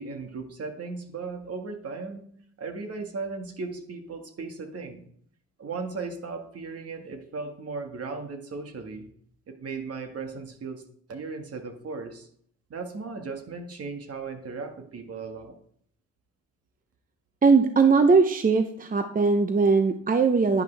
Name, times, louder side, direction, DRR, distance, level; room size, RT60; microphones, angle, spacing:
voice 1, 0.0-2.2 2.6-5.1 5.6-9.1 9.5-12.3 12.7-15.6, right 4 dB, 50° right, 5 dB, 1.9 m, -36 dB
voice 2, 17.4-20.6, right 4 dB, 30° right, 8 dB, 0.8 m, -20 dB
10.5 x 10.5 x 3.4 m, 0.65 s
cardioid pair, 90°, 30 cm